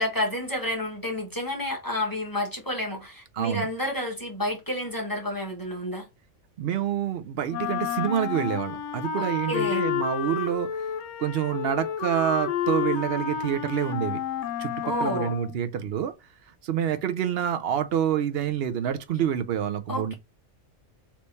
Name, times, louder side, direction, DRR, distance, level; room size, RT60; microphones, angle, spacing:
voice 1, 0.0-6.0 9.1-9.9 14.8-15.3 19.9-20.1, left 1 dB, 15° left, 1.2 m, -30 dB
voice 2, 3.3-3.7 6.6-10.9 11.2-14.2 14.6-16.1 16.6-20.1, right 9 dB, 65° right, 0.7 m, -27 dB
Wind instrument woodwind instrument, 7.5-15.6, left 8 dB, 75° left, 1.0 m, -30 dB
3.4 x 3.1 x 4.0 m
omnidirectional pair, 1.3 m